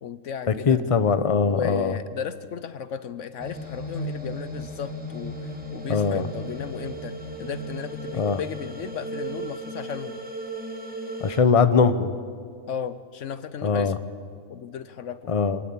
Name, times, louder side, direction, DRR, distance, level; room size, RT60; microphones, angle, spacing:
voice 1, 0.0-0.8 1.4-10.2 12.7-13.9 14.5-15.3, left 8 dB, 70° left, 14 dB, 1.1 m, -35 dB
voice 2, 0.7-2.0 5.9-6.3 8.1-8.4 11.2-12.2 13.6-14.0 15.3-15.6, left 5 dB, 30° left, 12 dB, 0.9 m, -21 dB
sound 1, 3.4-11.4, right 1 dB, 5° right, 2.7 m, -35 dB
25.0 x 18.5 x 8.7 m, 2.1 s
omnidirectional pair, 1.4 m